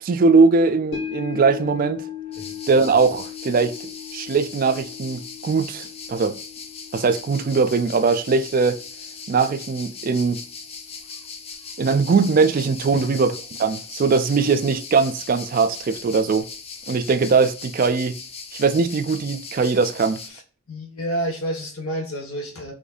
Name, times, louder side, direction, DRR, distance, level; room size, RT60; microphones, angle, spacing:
voice 1, 0.0-2.0 2.7-3.7 4.1-6.4 6.9-8.8 9.3-10.4 11.8-13.3 13.6-16.5 16.9-18.2 18.5-20.2, right 4 dB, 40° right, 0.3 m, -20 dB
sound 1, 0.9-11.3 11.7-11.8, left 8 dB, 60° left, 1.4 m, -38 dB
sound 2, 2.3-20.3, left 5 dB, 30° left, 0.4 m, -39 dB
voice 2, 20.7-22.7, equal, 85° left, 1.3 m, -30 dB
4.9 x 2.6 x 2.3 m
head